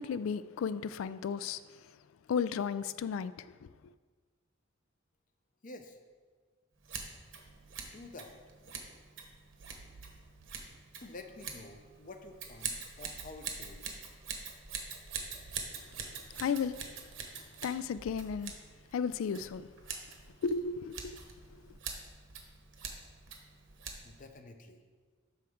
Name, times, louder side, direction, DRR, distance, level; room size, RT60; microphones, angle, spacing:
voice 1, 0.0-1.9 2.3-3.7 16.3-16.8 17.6-18.6 18.9-19.7 20.4-21.2 21.5-21.8, left 6 dB, 75° left, 0.3 m, -34 dB
voice 2, 5.6-6.0 7.8-8.4 11.0-14.2 24.0-24.8, left 2 dB, 40° left, 0.6 m, -50 dB
Scissors, 6.8-24.3, right 6 dB, 60° right, 1.0 m, -45 dB
sound 1, 7.4-7.9 9.5-11.0 13.0-13.7 15.1-15.9 17.7-19.1, right 4 dB, 85° right, 0.4 m, -57 dB
12.0 x 4.5 x 3.6 m
head